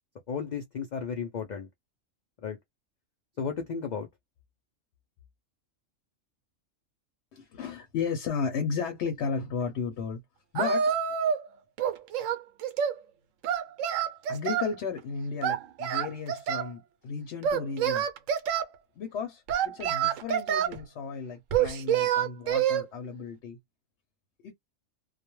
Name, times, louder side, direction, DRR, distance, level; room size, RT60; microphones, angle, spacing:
voice 1, 0.3-1.7 2.4-2.6 3.4-4.1, left 6 dB, 85° left, 0.4 m, -34 dB
voice 2, 7.3-10.2 10.5-10.9 14.3-18.1 18.9-23.6 24.4-24.5, left 5 dB, 65° left, 0.8 m, -34 dB
Singing, 10.6-11.5 11.8-13.0 13.4-14.7 15.4-16.7 17.4-18.7 19.5-20.8 21.5-22.8, right 9 dB, 75° right, 0.9 m, -27 dB
2.3 x 2.1 x 2.9 m
omnidirectional pair, 1.4 m